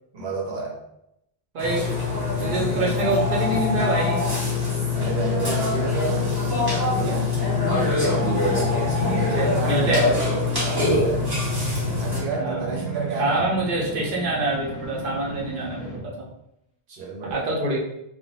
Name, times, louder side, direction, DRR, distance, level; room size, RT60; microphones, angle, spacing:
voice 1, 0.1-0.8 1.7-2.0 2.4-2.6 4.9-6.4 6.9-7.4 9.2-11.3 12.0-13.5 16.9-17.5, right 4 dB, 85° right, -1 dB, 0.8 m, -30 dB
voice 2, 1.5-1.9 2.4-4.2 7.8-8.1 8.4-10.0 12.4-12.7 13.2-16.3 17.3-17.8, right 2 dB, 55° right, -3 dB, 0.8 m, -26 dB
Burping eructation, 1.6-12.2, left 3 dB, 25° right, 0.9 m, -24 dB
sound 1, 7.7-16.2, right 3 dB, 20° left, 0.7 m, -35 dB
2.4 x 2.1 x 2.9 m, 0.81 s
omnidirectional pair, 1.0 m